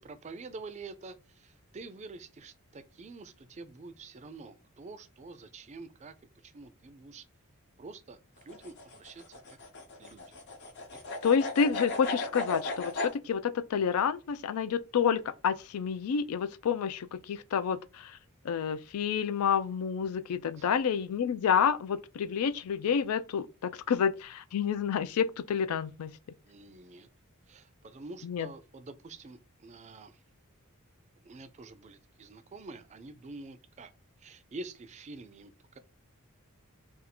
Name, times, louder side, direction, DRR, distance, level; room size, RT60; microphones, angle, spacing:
voice 1, 0.0-6.1 6.4-7.3 7.8-9.4 10.0-10.3 10.9-11.2 20.6-20.7 26.4-27.1 27.5-30.2 31.2-33.9 34.2-35.8, right 3 dB, 30° right, 0.4 m, -47 dB
sound 1, 8.4-13.1, left 2 dB, 55° left, 0.7 m, -36 dB
voice 2, 11.2-18.2 18.4-26.2 28.2-28.5, left 7 dB, 85° left, 0.4 m, -29 dB
2.6 x 2.3 x 4.1 m
head